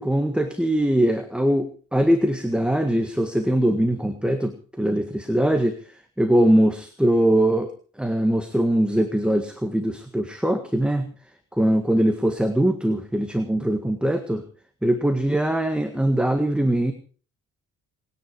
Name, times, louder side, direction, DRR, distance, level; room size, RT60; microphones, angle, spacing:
voice 1, 0.0-5.8 6.2-7.7 8.0-11.1 11.5-14.4 14.8-16.9, right 1 dB, 5° right, 7 dB, 1.8 m, -22 dB
26.0 x 10.0 x 4.8 m, 0.39 s
cardioid pair, 90°, 30 cm